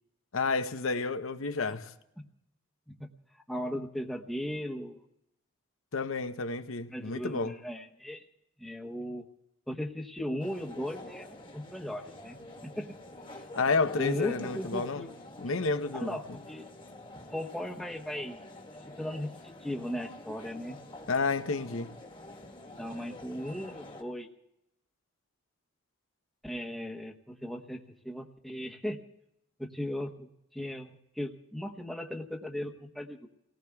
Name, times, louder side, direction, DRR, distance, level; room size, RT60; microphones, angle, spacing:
voice 1, 0.3-1.9 5.9-7.5 13.5-15.1 15.4-16.1 21.1-21.9, left 4 dB, 75° left, 0.8 m, -30 dB
voice 2, 3.3-5.0 6.9-8.2 8.6-9.2 9.7-13.0 14.0-15.1 15.9-16.7 17.3-18.4 18.9-20.8 22.8-24.3 26.4-29.0 29.6-33.3, equal, ahead, 1.0 m, -37 dB
sound 1, 10.4-24.0, left 1 dB, 25° left, 1.4 m, -48 dB
30.0 x 18.0 x 2.3 m
head